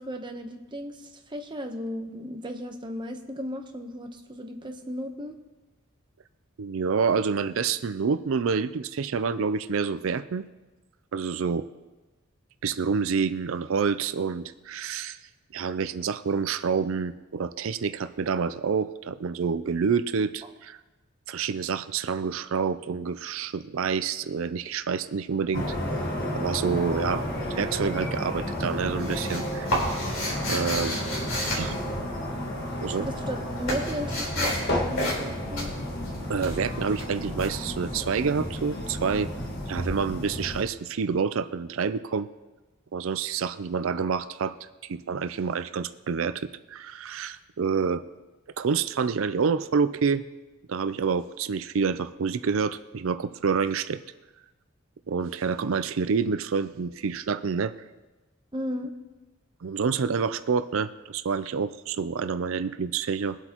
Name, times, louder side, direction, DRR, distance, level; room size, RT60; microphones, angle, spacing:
voice 1, 0.0-5.4 20.4-20.5 32.8-34.6 34.9-35.7 58.5-58.9, equal, 20° right, 4 dB, 0.9 m, -35 dB
voice 2, 6.6-10.4 11.1-11.7 12.6-15.2 15.5-20.8 21.3-25.8 26.4-27.2 27.6-29.8 30.5-31.0 31.5-31.8 32.8-33.1 36.3-39.3 39.7-42.3 42.9-44.6 44.8-48.0 48.6-50.2 50.7-54.0 55.1-57.7 59.6-63.4, right 5 dB, 70° right, 12 dB, 0.4 m, -28 dB
sound 1, 25.5-40.6, equal, 50° left, 1.5 m, -32 dB
sound 2, 28.6-32.4 33.1-34.7 34.9-35.3 35.5-37.5 39.7-39.8, left 1 dB, 75° left, 3.8 m, -31 dB
22.5 x 8.0 x 3.0 m, 1.2 s
head